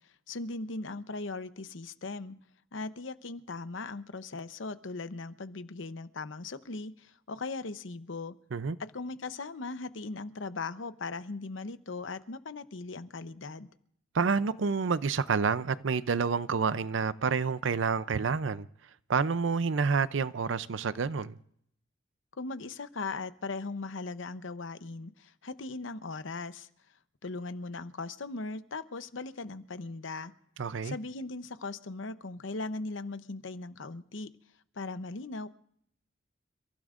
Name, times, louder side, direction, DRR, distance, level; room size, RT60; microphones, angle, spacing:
voice 1, 0.3-2.4 2.7-8.3 8.8-13.7 22.4-26.7 27.2-30.3 30.8-34.3 34.8-35.5, left 3 dB, 85° left, 0.8 m, -39 dB
voice 2, 14.1-18.7 19.1-21.3 30.6-31.0, right 5 dB, 80° right, 0.5 m, -28 dB
29.5 x 15.5 x 2.5 m
head